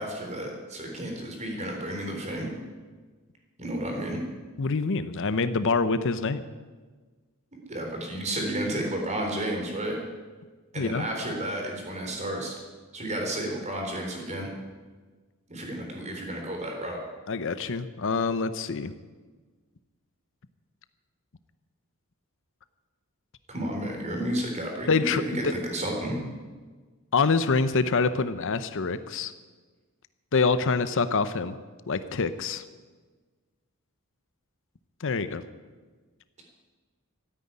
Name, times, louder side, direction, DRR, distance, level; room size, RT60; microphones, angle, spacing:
voice 1, 0.0-2.5 3.6-4.2 7.7-10.0 10.7-12.6 12.9-14.5 15.5-17.0 23.5-26.2, right 1 dB, 30° right, 1 dB, 3.7 m, -32 dB
voice 2, 4.6-6.4 10.8-11.1 17.3-18.9 24.9-25.5 27.1-29.3 30.3-31.6 31.9-32.6 35.0-35.4, left 4 dB, 60° left, 13 dB, 0.7 m, -26 dB
13.5 x 9.5 x 9.7 m, 1.4 s
head